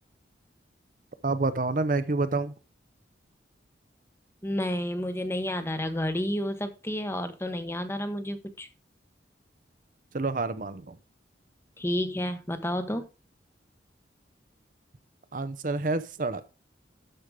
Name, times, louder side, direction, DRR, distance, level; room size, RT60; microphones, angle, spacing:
voice 1, 1.2-2.5 10.1-11.0 15.3-16.4, right 3 dB, 45° right, 0.7 m, -28 dB
voice 2, 4.4-8.7 11.8-13.1, left 1 dB, 15° left, 1.0 m, -30 dB
12.5 x 5.1 x 5.0 m
head